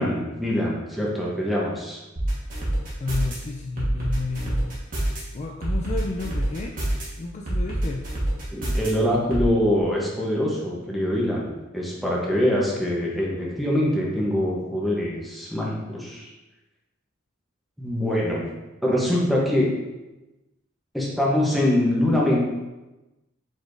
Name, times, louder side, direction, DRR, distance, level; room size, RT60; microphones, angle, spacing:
voice 1, 0.0-2.0 8.5-16.3 17.8-18.5 18.8-19.7 20.9-22.4, left 1 dB, ahead, -4 dB, 0.9 m, -24 dB
sound 1, 2.2-3.3 3.8-5.2 5.6-7.0 7.5-8.9 9.3-9.5, right 1 dB, 45° right, 1.4 m, -25 dB
voice 2, 3.0-4.8 5.3-6.8 7.2-8.1, left 3 dB, 35° left, 0 dB, 0.3 m, -31 dB
4.8 x 4.0 x 2.6 m, 1.0 s
head